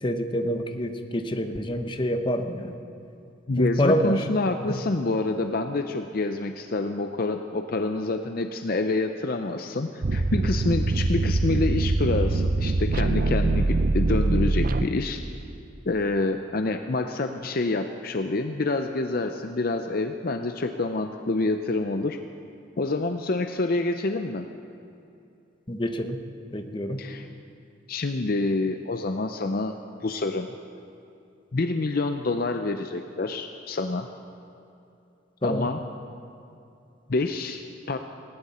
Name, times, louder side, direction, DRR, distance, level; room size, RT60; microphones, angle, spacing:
voice 1, 0.0-2.8 3.6-4.3 4.7-4.8 25.7-26.2 26.5-27.0 35.4-35.7, equal, 25° left, 6 dB, 0.9 m, -26 dB
voice 2, 3.5-15.2 15.9-22.2 22.8-24.5 27.0-27.3 27.9-29.7 30.0-30.5 31.5-34.1 35.4-35.8 37.1-38.0, left 2 dB, 50° left, 7 dB, 0.6 m, -27 dB
sound 1, 10.0-15.3, right 2 dB, 45° right, 0.5 m, -23 dB
19.0 x 17.5 x 4.3 m, 2.6 s
head